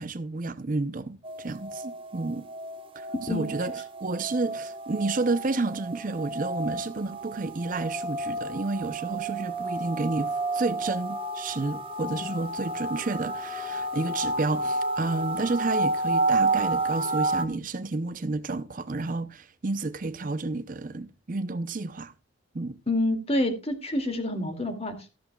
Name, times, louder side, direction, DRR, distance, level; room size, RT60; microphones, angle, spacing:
voice 1, 0.0-2.5 3.0-22.1 22.5-22.8, right 3 dB, 40° right, 0.6 m, -31 dB
sound 1, 1.2-17.5, right 2 dB, 25° right, 1.3 m, -31 dB
voice 2, 22.9-25.1, left 1 dB, 30° left, 2.4 m, -27 dB
13.5 x 13.0 x 2.3 m
head